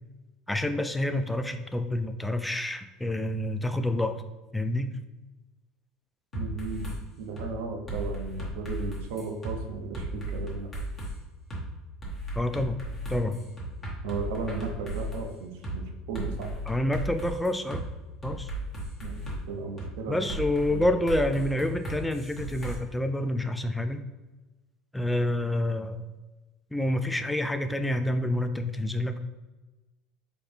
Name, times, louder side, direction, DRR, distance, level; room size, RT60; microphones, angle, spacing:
voice 1, 0.5-4.2 4.5-4.9 12.3-12.8 13.1-13.4 16.7-17.8 18.2-18.5 20.1-24.0 24.9-26.0 26.7-29.2, left 1 dB, 5° left, 8 dB, 0.3 m, -28 dB
sound 1, 6.3-7.0 7.4-7.5 7.9-9.6 9.9-11.1 11.5-11.6 12.0-15.2 15.6-15.8 16.1-17.8 18.2-19.4 19.8-19.9 20.3-22.7, right 1 dB, 25° left, 1.3 m, -35 dB
voice 2, 6.3-6.9 7.2-10.7 14.0-16.5 19.0-20.2 20.7-20.8, right 4 dB, 85° right, 4 dB, 0.6 m, -35 dB
4.1 x 2.8 x 3.3 m, 1.2 s
supercardioid pair, 120°, 0 cm